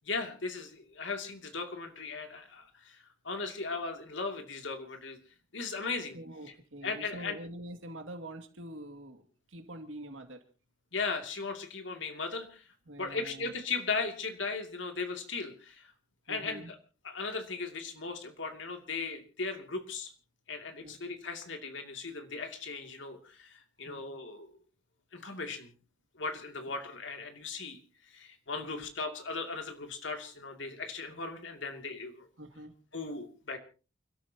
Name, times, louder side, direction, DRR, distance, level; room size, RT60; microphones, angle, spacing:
voice 1, 0.1-5.2 5.5-6.2 6.8-7.4 10.9-12.6 13.0-15.9 16.3-16.8 17.0-20.1 20.5-24.6 25.1-25.7 26.1-27.8 28.1-32.3 32.9-33.6, left 4 dB, 75° left, 4 dB, 2.7 m, -37 dB
voice 2, 6.1-10.4 12.9-13.5 16.3-16.7 20.8-21.0 23.8-24.1 26.7-26.8 28.6-28.8 32.4-32.7, right 1 dB, 85° right, 6 dB, 2.4 m, -45 dB
29.0 x 13.0 x 2.9 m, 0.35 s
head